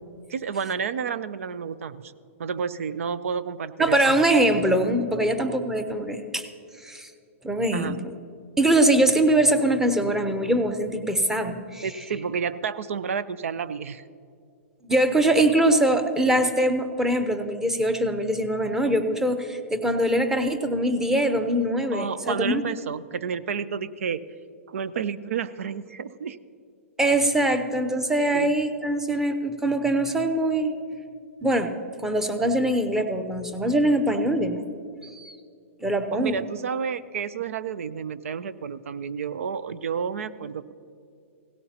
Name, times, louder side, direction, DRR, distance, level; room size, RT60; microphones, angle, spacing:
voice 1, 0.3-2.1 2.4-4.0 5.2-5.4 7.7-8.0 11.8-14.0 21.9-24.2 24.7-26.4 28.3-28.6 36.1-40.7, right 6 dB, 80° right, 17 dB, 0.6 m, -30 dB
voice 2, 3.8-6.5 6.8-7.1 7.4-8.0 8.6-11.8 14.9-22.7 27.0-30.7 31.4-31.7 32.0-34.6 35.0-35.4 35.8-36.4, right 1 dB, 5° right, 8 dB, 0.8 m, -23 dB
17.5 x 16.0 x 2.9 m, 2.4 s
hypercardioid pair, 135°, 7 cm